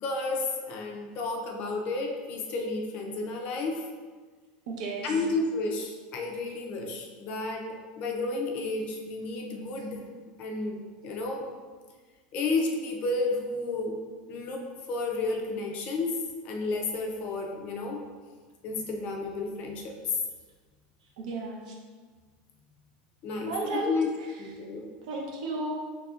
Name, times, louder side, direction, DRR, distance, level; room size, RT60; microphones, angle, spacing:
voice 1, 0.0-3.9 5.0-10.1 10.4-11.5 12.3-14.0 14.3-18.0 18.6-20.2 23.2-24.1 24.4-24.9, left 3 dB, 30° left, 1 dB, 0.4 m, -32 dB
voice 2, 4.7-5.2 21.2-21.7 23.5-24.0 25.0-25.9, right 3 dB, 65° right, 0 dB, 0.8 m, -33 dB
4.9 x 3.2 x 2.4 m, 1.5 s
supercardioid pair, 180°, 4 cm